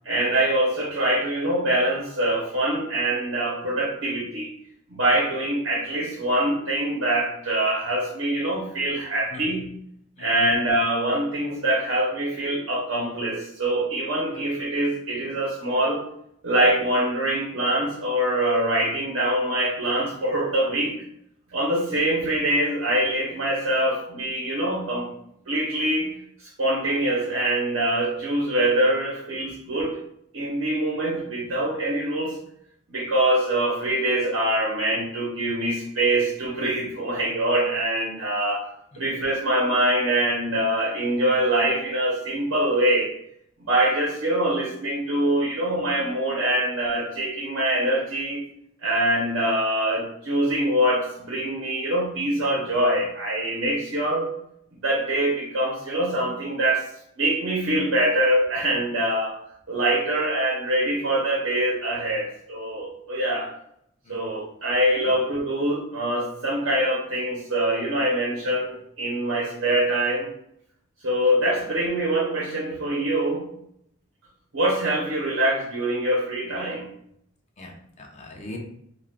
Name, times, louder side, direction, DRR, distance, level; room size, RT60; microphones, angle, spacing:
voice 1, 0.0-4.5 4.9-9.7 10.2-16.0 16.4-21.0 21.5-25.1 25.5-26.1 26.4-30.0 30.3-32.4 32.9-38.7 39.0-43.1 43.6-48.4 48.8-54.3 54.7-56.9 57.2-59.3 59.7-63.5 64.1-70.3 71.0-73.5 74.5-76.9, right 1 dB, 75° right, -4 dB, 0.8 m, -24 dB
voice 2, 9.3-9.6 10.2-10.5 14.3-14.5 21.9-22.0 38.9-39.2 64.0-64.4 65.0-65.2 71.6-71.7 77.6-78.6, left 2 dB, 35° left, 1 dB, 0.5 m, -43 dB
2.3 x 2.3 x 3.4 m, 0.72 s
head